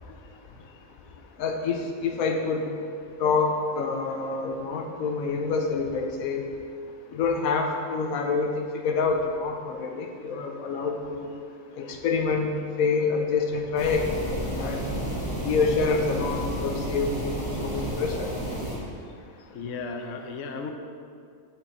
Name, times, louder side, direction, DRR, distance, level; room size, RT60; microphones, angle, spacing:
voice 1, 1.4-2.7 3.2-6.4 7.1-11.3 11.8-12.5 12.8-14.8 15.4-18.3, left 4 dB, 90° left, 3 dB, 1.1 m, -27 dB
sound 1, 13.8-18.8, equal, 15° right, 1.7 m, -31 dB
voice 2, 19.5-20.7, left 4 dB, 70° left, 4 dB, 0.9 m, -35 dB
8.8 x 4.1 x 4.3 m, 2.3 s
omnidirectional pair, 1.4 m